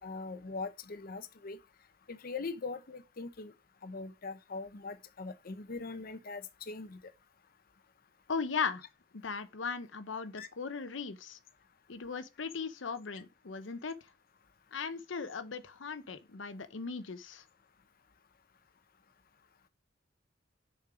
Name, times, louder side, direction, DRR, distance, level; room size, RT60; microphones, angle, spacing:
voice 1, 0.0-1.6 2.1-3.5 3.8-7.0 10.4-10.5, left 4 dB, 50° left, 0.7 m, -41 dB
voice 2, 8.3-8.8 9.1-11.4 11.9-14.0 14.7-17.4, left 5 dB, 85° left, 0.8 m, -38 dB
6.7 x 5.3 x 4.8 m
head